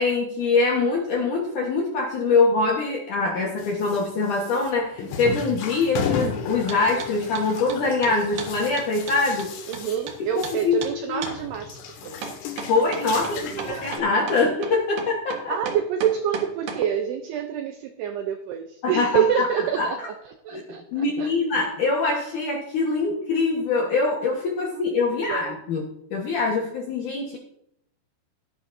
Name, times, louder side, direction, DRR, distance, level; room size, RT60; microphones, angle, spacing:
voice 1, 0.0-9.5 10.2-10.8 11.1-11.2 12.7-15.6 18.8-19.5 19.8-19.9 20.5-20.6 20.9-25.8 26.1-27.4, left 3 dB, 65° left, -1 dB, 2.0 m, -24 dB
sound 1, 3.6-10.9 11.1-14.0, left 6 dB, 85° left, 4.3 m, -34 dB
sound 2, 6.7-7.1 7.4-10.2 10.4-10.6 10.8-10.9 11.2-11.4 12.2-16.8, right 5 dB, 60° right, 2.5 m, -34 dB
voice 2, 9.7-12.2 13.3-14.0 15.5-20.1 20.4-21.3 25.1-25.6, right 9 dB, 85° right, 6 dB, 2.3 m, -27 dB
16.0 x 11.5 x 2.7 m, 0.74 s
omnidirectional pair, 5.7 m